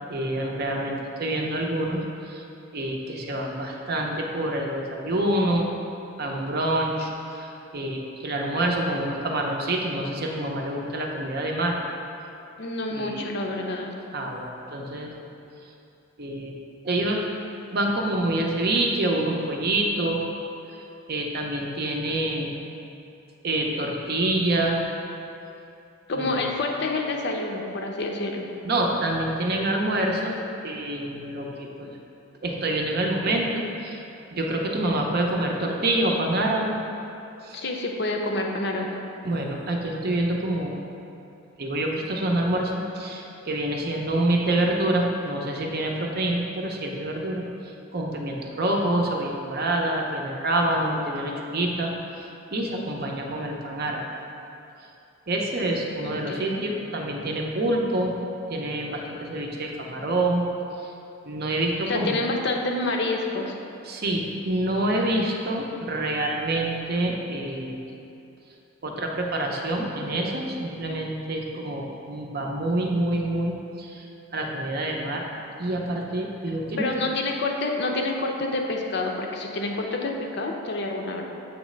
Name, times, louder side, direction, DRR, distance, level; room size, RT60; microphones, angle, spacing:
voice 1, 0.1-2.4 2.7-5.7 6.2-11.8 12.9-13.3 14.1-15.1 16.2-16.5 16.8-17.3 17.7-20.2 21.1-22.5 23.4-24.8 26.1-26.4 28.6-30.4 30.6-31.9 32.4-34.0 34.3-36.8 37.4-37.6 39.2-40.7 41.6-47.4 47.9-51.9 52.2-54.0 55.3-58.1 58.5-60.4 60.8-60.9 61.2-62.2 63.9-67.8 68.8-74.1 74.3-75.3 75.6-76.9, right 1 dB, 45° right, 0 dB, 0.6 m, -26 dB
voice 2, 12.6-13.9 26.1-28.5 37.5-39.0 56.0-56.7 61.9-63.5 76.8-81.2, left 2 dB, 50° left, 1 dB, 0.5 m, -28 dB
7.3 x 3.1 x 5.0 m, 2.8 s
head